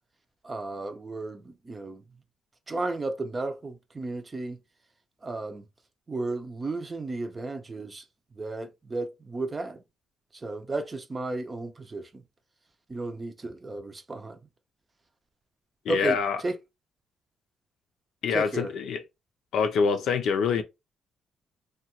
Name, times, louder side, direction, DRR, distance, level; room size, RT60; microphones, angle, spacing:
voice 1, 0.4-2.0 2.7-4.6 5.2-5.6 6.1-8.0 8.4-9.8 10.3-12.2 12.9-14.4 15.9-16.2 16.4-16.6 18.3-18.7, right 2 dB, 25° right, 0.6 m, -33 dB
voice 2, 15.8-16.4 18.2-19.0 19.5-20.6, left 6 dB, 75° left, 0.5 m, -25 dB
2.8 x 2.3 x 2.9 m
cardioid pair, 90°, 0 cm